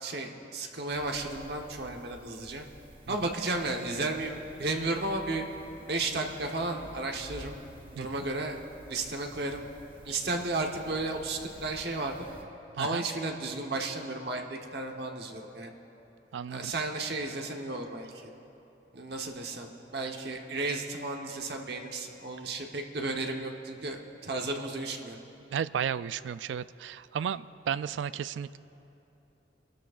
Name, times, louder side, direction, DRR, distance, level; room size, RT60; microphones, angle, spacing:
voice 1, 0.0-2.6 3.1-5.4 5.9-7.6 7.9-8.6 8.9-9.7 10.0-12.1 12.8-15.7 16.5-18.3 18.9-25.2, right 2 dB, 60° right, 2 dB, 1.1 m, -33 dB
sound 1, 0.9-12.4, right 1 dB, 30° right, 1.0 m, -52 dB
voice 2, 16.3-16.7 25.5-28.6, right 8 dB, 85° right, 16 dB, 0.3 m, -33 dB
25.5 x 13.0 x 2.5 m, 3.0 s
head